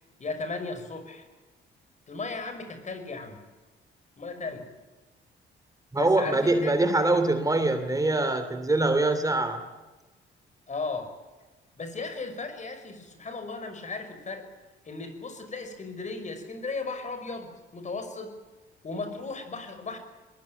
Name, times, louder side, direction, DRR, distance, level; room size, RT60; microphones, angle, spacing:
voice 1, 0.2-1.3 2.1-3.4 4.2-4.7 5.9-6.7 10.7-11.1 11.8-14.5 14.9-18.3 18.8-20.0, left 3 dB, 35° left, 9 dB, 5.5 m, -36 dB
voice 2, 5.9-9.6, right 2 dB, 15° right, 9 dB, 2.7 m, -24 dB
22.0 x 20.5 x 9.1 m, 1.2 s
cardioid pair, 90°, 20 cm